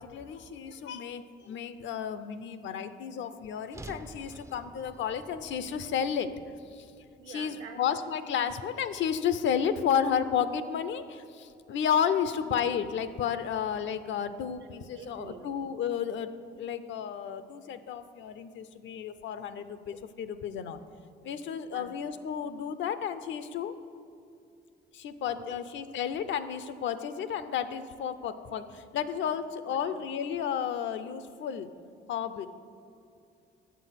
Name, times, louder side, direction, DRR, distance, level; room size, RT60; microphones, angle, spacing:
voice 1, 0.0-6.3 6.7-6.9 7.3-16.3 16.6-20.8 21.2-23.7 24.9-31.7 32.1-32.5, left 8 dB, 70° left, 12 dB, 0.6 m, -32 dB
sound 1, 3.7-8.0, right 2 dB, 15° right, 0.4 m, -50 dB
voice 2, 7.2-7.8 8.4-8.5 14.0-14.2 14.9-15.5 21.7-21.9 25.4-25.6 29.3-29.4 29.7-29.8, right 7 dB, 80° right, 6 dB, 1.0 m, -47 dB
8.3 x 7.2 x 5.8 m, 2.5 s
cardioid pair, 90°, 20 cm